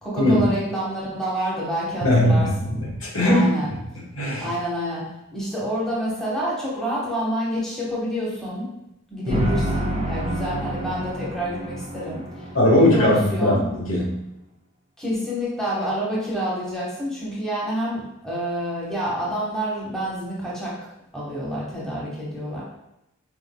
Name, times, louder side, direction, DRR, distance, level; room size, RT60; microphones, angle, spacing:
voice 1, 0.0-2.8 3.2-3.7 4.4-5.0 5.3-8.7 9.1-13.7 15.0-20.8 21.1-22.6, equal, 5° left, -7 dB, 1.0 m, -28 dB
voice 2, 2.0-3.4 4.1-4.5 9.3-9.4 12.5-14.2, left 1 dB, 75° left, -3 dB, 1.2 m, -19 dB
sound 1, 9.3-13.4, right 1 dB, 25° right, 0.4 m, -29 dB
4.4 x 3.6 x 2.2 m, 0.89 s
head